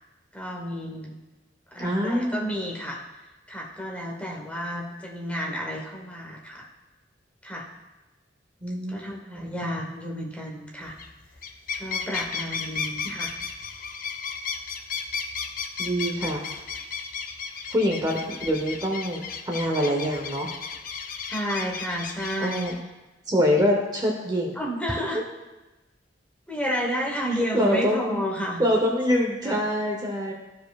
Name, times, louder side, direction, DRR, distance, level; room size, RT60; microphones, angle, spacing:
voice 1, 0.3-1.2 1.7-3.0 3.5-6.6 7.4-7.7 8.9-10.9 11.8-13.3 21.3-22.7 24.6-25.2 26.5-28.6 29.4-29.6, equal, 5° left, -1 dB, 1.0 m, -31 dB
voice 2, 1.8-2.5 8.6-9.4 15.8-16.4 17.7-20.5 22.4-22.7 23.3-24.6 25.1-25.2 27.5-28.2 28.6-30.3, equal, 20° right, 0 dB, 0.8 m, -25 dB
sound 1, 10.9-11.1 11.4-22.8, left 5 dB, 45° left, 0.5 m, -34 dB
13.5 x 4.7 x 2.3 m, 1.1 s
head